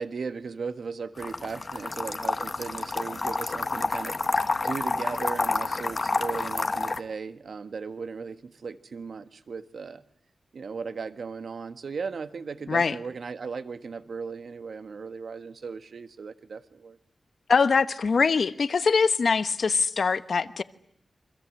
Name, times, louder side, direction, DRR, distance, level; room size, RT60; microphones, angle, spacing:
voice 1, 0.0-10.0 10.5-17.0, right 5 dB, 65° right, 1.5 m, -37 dB
sound 1, 1.2-7.0, left 3 dB, 35° left, 1.1 m, -29 dB
voice 2, 17.5-20.6, left 5 dB, 60° left, 1.1 m, -23 dB
29.0 x 25.0 x 7.7 m
wide cardioid pair, 155°, 0 cm